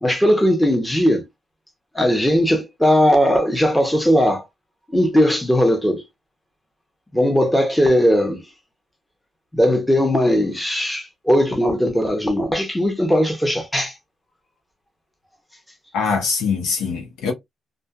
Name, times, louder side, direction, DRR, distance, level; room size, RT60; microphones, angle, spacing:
voice 1, 0.0-1.2 1.9-4.4 4.9-6.0 7.1-8.4 9.5-13.9, equal, 5° left, 0.8 m, -18 dB
voice 2, 15.9-17.3, left 5 dB, 85° left, 1.0 m, -22 dB
2.5 x 2.4 x 2.3 m
cardioid pair, 90°, 0 cm